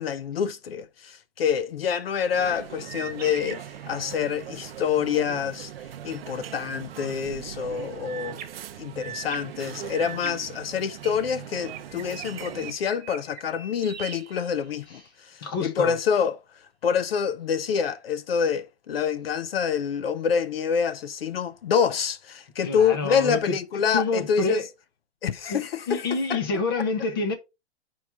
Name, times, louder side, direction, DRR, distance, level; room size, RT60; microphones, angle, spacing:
voice 1, 0.0-5.7 6.0-8.4 8.8-16.4 16.8-24.6 25.2-26.0 26.3-26.4, left 7 dB, 60° left, 0.6 m, -27 dB
sound 1, 2.3-12.7, right 10 dB, 60° right, 0.6 m, -40 dB
sound 2, 2.9-4.6 8.0-11.2 11.6-15.1, right 7 dB, 40° right, 1.3 m, -42 dB
voice 2, 15.4-16.0 22.6-23.6 23.9-24.7 25.5-27.3, left 3 dB, 20° left, 0.7 m, -28 dB
8.7 x 4.7 x 3.3 m
hypercardioid pair, 180°, 34 cm